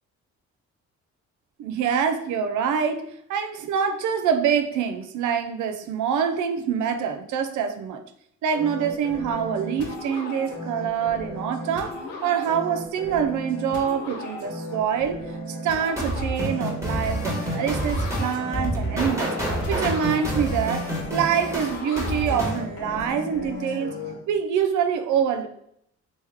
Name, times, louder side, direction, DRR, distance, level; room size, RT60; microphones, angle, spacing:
voice 1, 1.6-8.0 8.4-19.3 19.7-20.9 21.1-24.0 24.3-25.5, right 7 dB, 75° right, 8 dB, 0.5 m, -25 dB
sound 1, 8.5-24.1, left 1 dB, 80° left, 1.3 m, -35 dB
sound 2, 16.0-22.6, right 1 dB, 10° right, 1.2 m, -28 dB
3.1 x 3.1 x 3.4 m, 0.72 s
cardioid pair, 90°, 30 cm